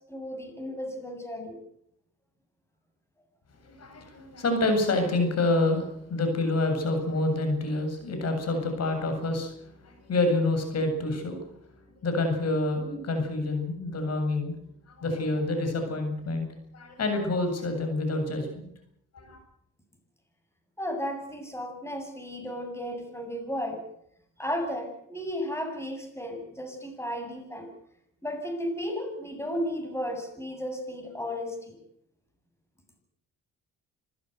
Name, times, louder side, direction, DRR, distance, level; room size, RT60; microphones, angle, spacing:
voice 1, 0.0-1.6 20.8-23.8 24.4-27.7 28.2-31.8, equal, 10° left, 5 dB, 7.8 m, -34 dB
voice 2, 3.6-11.4 12.0-14.6 14.9-16.5 16.7-18.7 19.1-19.4, left 2 dB, 55° left, 6 dB, 7.9 m, -27 dB
27.0 x 15.0 x 8.1 m, 0.73 s
cardioid pair, 90°, 30 cm